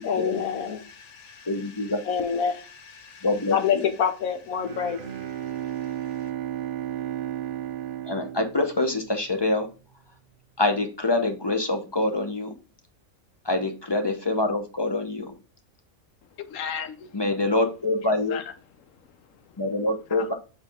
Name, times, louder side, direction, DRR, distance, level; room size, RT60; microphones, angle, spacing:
voice 1, 0.0-1.5 2.1-5.0, left 7 dB, 85° left, 1.4 m, -27 dB
voice 2, 1.5-2.0 3.2-3.9 8.1-9.7 10.6-12.5 13.4-15.3 17.1-18.4 19.6-20.3, left 2 dB, 25° left, 0.7 m, -25 dB
Bowed string instrument, 4.5-9.4, right 12 dB, 80° right, 0.4 m, -34 dB
voice 3, 16.4-17.2 18.3-18.5 18.9-19.6 20.1-20.3, left 7 dB, 70° left, 1.1 m, -36 dB
7.1 x 3.9 x 3.5 m
omnidirectional pair, 1.5 m